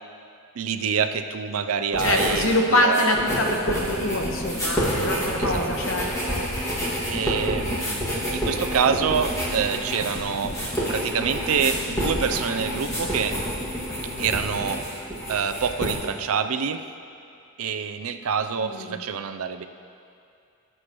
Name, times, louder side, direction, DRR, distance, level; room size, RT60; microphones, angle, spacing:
voice 1, 0.6-3.5 5.4-5.7 7.1-8.1 8.3-10.6 10.9-13.4 14.2-16.9 17.6-19.6, right 6 dB, 85° right, 9 dB, 0.5 m, -26 dB
sound 1, 1.9-2.6 2.8-15.9, equal, 15° left, 2.0 m, -29 dB
voice 2, 2.0-6.5 18.6-19.0, left 1 dB, 75° left, 1 dB, 1.2 m, -24 dB
sound 2, 3.7-15.9 16.1-16.2 16.4-16.5, left 1 dB, 35° left, 1.9 m, -35 dB
19.5 x 7.6 x 3.1 m, 2.5 s
head